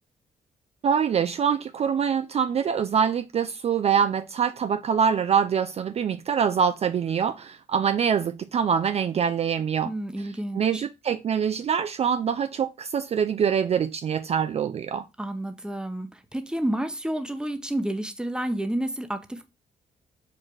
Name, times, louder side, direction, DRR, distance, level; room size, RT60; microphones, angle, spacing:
voice 1, 0.8-9.9 10.5-15.1, right 7 dB, 45° right, 0.4 m, -24 dB
voice 2, 9.8-10.8 15.2-19.5, right 1 dB, 5° right, 0.8 m, -30 dB
4.6 x 2.4 x 4.7 m
supercardioid pair, 55°, 15 cm